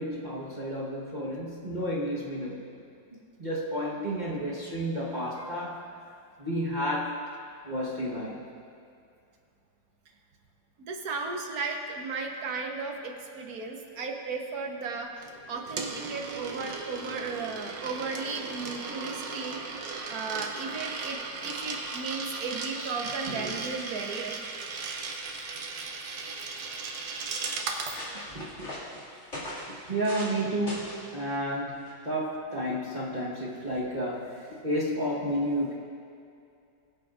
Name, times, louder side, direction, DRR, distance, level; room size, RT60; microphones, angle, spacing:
voice 1, 0.0-2.6 3.4-5.8 6.4-7.2 7.6-8.4 23.3-23.6 28.3-28.7 29.7-35.7, equal, 30° right, -7 dB, 1.2 m, -31 dB
voice 2, 10.9-19.6 20.1-24.4 27.6-27.8, right 4 dB, 60° right, 2 dB, 1.4 m, -35 dB
Coin (dropping), 15.2-28.0, right 4 dB, 85° right, 1.6 m, -37 dB
sound 1, 25.8-25.9 26.1-26.7 27.3-27.4 27.7-30.4 30.7-31.1 31.8-32.1, left 1 dB, 40° left, 2.7 m, -40 dB
22.5 x 7.9 x 2.5 m, 2.5 s
omnidirectional pair, 1.9 m